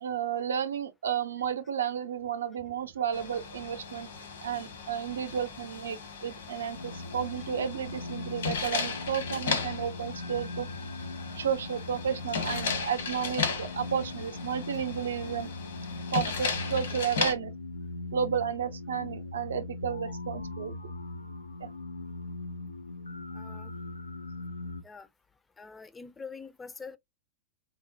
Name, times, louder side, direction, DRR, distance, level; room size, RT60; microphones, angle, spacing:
voice 1, 0.0-4.1 4.4-10.7 11.3-15.5 16.1-17.5 18.1-20.8 21.6-21.7, right 8 dB, 70° right, 0.5 m, -32 dB
sound 1, 3.1-17.3, left 5 dB, 65° left, 1.0 m, -36 dB
sound 2, 6.7-24.8, left 2 dB, 85° left, 0.4 m, -40 dB
voice 2, 23.3-23.7 24.8-25.1 25.6-27.0, left 5 dB, 15° left, 0.4 m, -44 dB
4.1 x 2.0 x 2.6 m
figure-of-eight pair, 95°, 0 cm